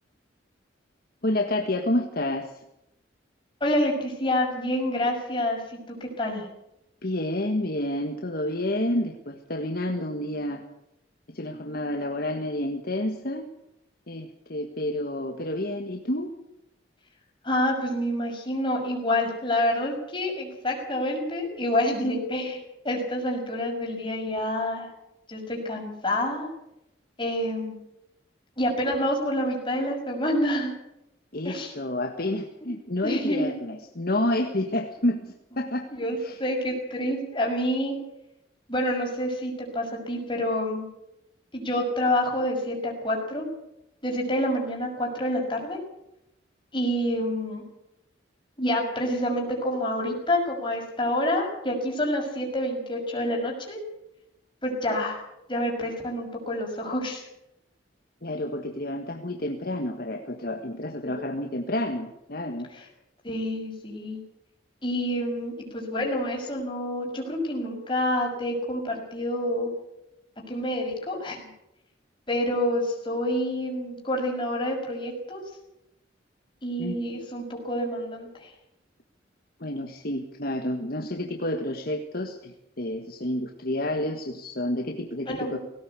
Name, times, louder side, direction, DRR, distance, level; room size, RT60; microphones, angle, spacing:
voice 1, 1.2-2.5 7.0-10.6 11.3-13.5 14.1-16.3 31.3-35.9 36.1-36.4 58.2-62.7 76.8-77.0 79.6-85.6, left 1 dB, 55° left, 3 dB, 1.6 m, -29 dB
voice 2, 3.6-6.5 17.4-22.6 22.8-24.9 25.3-26.5 27.2-27.8 28.6-30.7 31.4-31.7 33.0-33.5 36.0-38.0 38.7-40.9 41.5-43.5 44.0-45.8 46.7-47.6 48.6-53.8 54.6-55.2 55.5-57.2 61.0-61.2 62.7-62.9 63.2-64.2 64.8-69.7 70.5-71.5 72.3-75.4 76.6-78.5 85.3-85.6, left 1 dB, 25° left, 0 dB, 6.0 m, -28 dB
18.0 x 17.5 x 8.3 m, 0.84 s
head